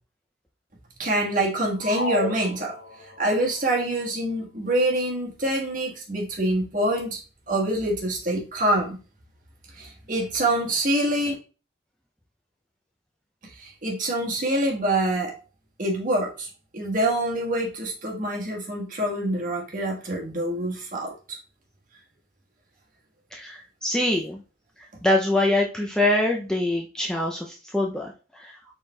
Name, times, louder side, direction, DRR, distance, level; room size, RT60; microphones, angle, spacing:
voice 1, 1.0-2.7 3.2-7.2 7.5-9.0 9.7-11.3 13.6-15.3 15.8-21.4, right 1 dB, 45° right, -1 dB, 1.3 m, -25 dB
sound 1, 1.8-3.3, left 2 dB, 80° left, 0.7 m, -31 dB
voice 2, 23.3-24.4 25.0-28.1 28.4-28.5, left 1 dB, 5° left, 0 dB, 0.4 m, -24 dB
4.8 x 4.2 x 2.2 m, 0.34 s
head